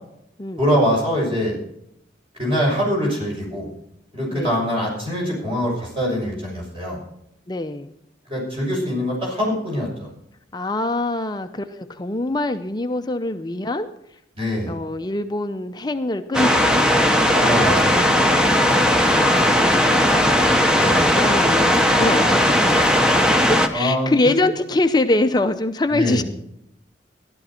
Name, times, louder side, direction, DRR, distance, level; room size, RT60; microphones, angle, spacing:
voice 1, 0.6-1.6 2.4-3.7 4.1-7.0 8.3-10.1 14.4-14.7 17.3-18.3 20.8-21.0 23.7-24.4 25.9-26.2, equal, 30° right, -3 dB, 6.2 m, -23 dB
voice 2, 7.5-7.9 10.5-13.9 14.6-17.3 19.1-22.9 23.2-26.2, left 2 dB, 25° left, 8 dB, 0.5 m, -24 dB
sound 1, 16.3-23.7, equal, 5° right, 0.8 m, -17 dB
14.0 x 11.5 x 4.4 m, 0.76 s
head